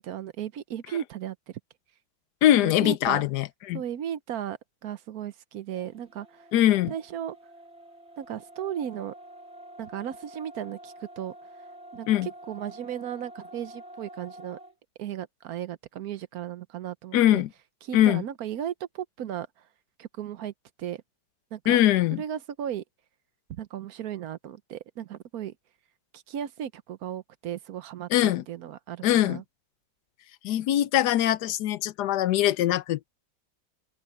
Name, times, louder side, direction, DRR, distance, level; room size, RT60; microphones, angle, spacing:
voice 1, 0.0-1.4 2.6-3.2 3.7-6.5 6.9-7.4 8.2-9.1 9.8-11.3 11.9-14.6 15.0-17.4 17.8-19.5 20.0-20.5 20.8-21.0 21.5-21.8 22.1-22.8 23.5-25.5 26.1-29.4, right 10 dB, 65° right, 1.1 m, -35 dB
voice 2, 2.4-3.8 6.5-6.9 12.1-12.3 17.1-17.5 17.9-18.2 21.7-22.2 28.1-28.4 29.0-29.4 30.4-33.1, left 12 dB, 70° left, 1.1 m, -22 dB
sound 1, 5.7-14.8, right 1 dB, 20° right, 5.4 m, -48 dB
open air
omnidirectional pair, 2.0 m